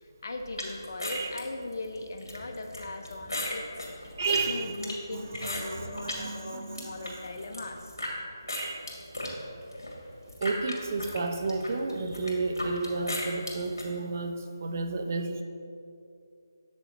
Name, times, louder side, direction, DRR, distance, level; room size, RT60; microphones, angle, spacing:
voice 1, 0.0-3.7 4.0-8.0, left 2 dB, 50° left, 4 dB, 0.8 m, -39 dB
sound 1, 0.6-6.2 6.6-8.1 8.5-13.9, left 1 dB, 70° left, 2.0 m, -37 dB
voice 2, 4.1-7.1 8.5-8.9 10.4-15.4, right 3 dB, 40° right, 6 dB, 0.6 m, -32 dB
7.8 x 6.4 x 4.2 m, 2.6 s
figure-of-eight pair, 155°, 2 cm